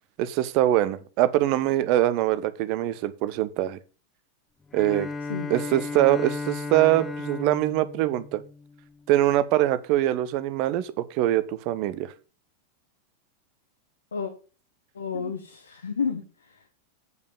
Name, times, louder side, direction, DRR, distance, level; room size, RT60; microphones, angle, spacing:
voice 1, 0.2-3.8 4.7-5.1 5.5-8.4 9.1-12.1, right 14 dB, 45° right, 15 dB, 0.8 m, -23 dB
Bowed string instrument, 4.7-9.1, left 4 dB, 15° left, 0.8 m, -35 dB
voice 2, 5.3-5.8 14.1-14.3 14.9-16.7, left 6 dB, 70° left, 7 dB, 1.0 m, -32 dB
8.1 x 5.3 x 6.8 m, 0.36 s
figure-of-eight pair, 90°, 0 cm